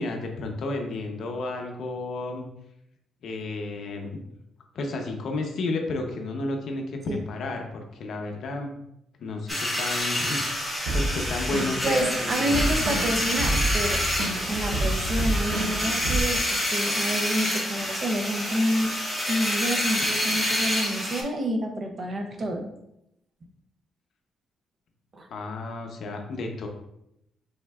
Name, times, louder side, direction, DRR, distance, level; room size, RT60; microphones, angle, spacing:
voice 1, 0.0-2.4 3.2-4.2 4.7-8.7 9.2-12.7 25.3-26.7, left 2 dB, 55° left, 3 dB, 0.7 m, -32 dB
sound 1, 9.5-21.2, equal, ahead, 0.9 m, -28 dB
sound 2, 10.9-16.2, right 1 dB, 75° right, 0.8 m, -29 dB
voice 2, 11.8-14.1 14.4-18.9 19.3-22.7 25.1-25.3, right 1 dB, 30° right, 4 dB, 0.5 m, -28 dB
5.2 x 3.5 x 2.3 m, 0.81 s
cardioid pair, 175°, 0 cm